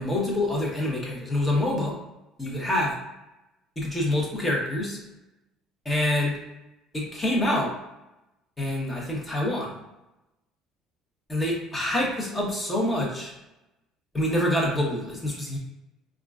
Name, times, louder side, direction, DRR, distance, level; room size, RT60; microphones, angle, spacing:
voice 1, 0.0-2.0 2.4-2.9 3.8-5.0 5.8-6.4 6.9-7.7 8.6-9.7 11.3-13.3 14.1-15.6, left 1 dB, 20° left, -2 dB, 1.0 m, -26 dB
3.6 x 2.4 x 2.4 m, 0.93 s
supercardioid pair, 95°, 0 cm